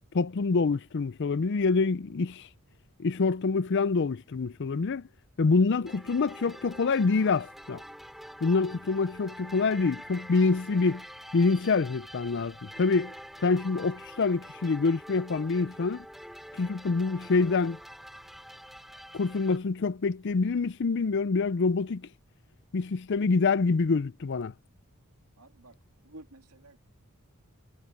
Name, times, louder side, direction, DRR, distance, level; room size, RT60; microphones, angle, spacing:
voice 1, 0.1-2.4 3.0-5.0 5.4-7.8 8.4-11.0 11.3-13.1 13.4-16.1 16.6-17.8 19.1-22.1 22.7-24.5, left 4 dB, 55° left, 0.5 m, -26 dB
sound 1, 5.9-19.6, equal, ahead, 6.0 m, -46 dB
voice 2, 25.4-25.8 26.0-26.8, right 2 dB, 90° right, 2.3 m, -51 dB
head